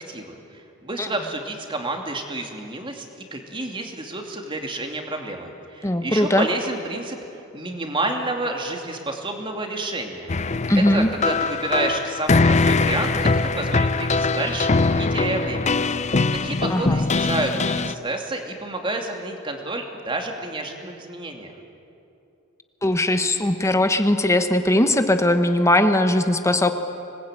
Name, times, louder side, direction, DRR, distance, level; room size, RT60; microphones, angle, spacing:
voice 1, 0.1-3.1 3.3-7.2 7.5-10.3 10.8-21.5, right 2 dB, 25° right, 3 dB, 2.7 m, -29 dB
voice 2, 5.8-6.4 10.7-11.1 16.7-17.0 22.8-26.7, left 1 dB, 15° left, 8 dB, 1.1 m, -19 dB
sound 1, 10.3-17.9, left 3 dB, 35° left, 0.6 m, -22 dB
26.0 x 20.5 x 9.1 m, 2.7 s
head